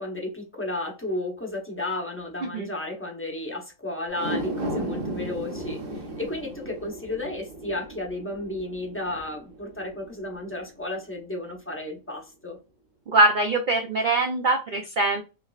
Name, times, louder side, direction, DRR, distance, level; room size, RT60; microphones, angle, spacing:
voice 1, 0.0-12.6, left 2 dB, 15° left, 0.5 m, -33 dB
sound 1, 4.1-10.6 11.0-11.1, right 1 dB, 50° right, 0.8 m, -35 dB
voice 2, 13.1-15.2, right 2 dB, 75° right, 0.4 m, -22 dB
3.6 x 3.0 x 2.4 m
omnidirectional pair, 1.5 m